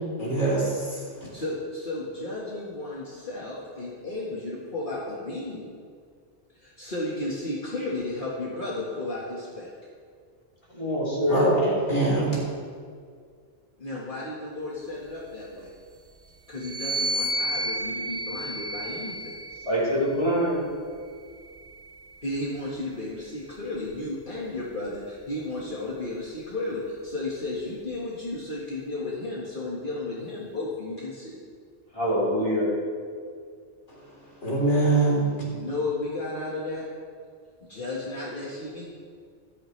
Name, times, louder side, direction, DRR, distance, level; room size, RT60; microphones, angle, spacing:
voice 1, 0.0-1.3 11.3-12.4 34.4-35.5, right 2 dB, 85° left, -6 dB, 4.2 m, -24 dB
voice 2, 1.3-5.7 6.5-9.7 13.8-15.7 16.5-19.4 22.2-31.4 35.5-36.9 37.7-38.9, left 2 dB, 50° left, -6 dB, 1.9 m, -33 dB
voice 3, 10.7-11.5 19.6-20.6 31.9-32.7, equal, 30° left, -7 dB, 3.8 m, -24 dB
sound 1, 16.6-20.2 21.0-22.6, right 1 dB, 50° right, 0.6 m, -32 dB
16.0 x 13.0 x 3.3 m, 2.1 s
omnidirectional pair, 1.2 m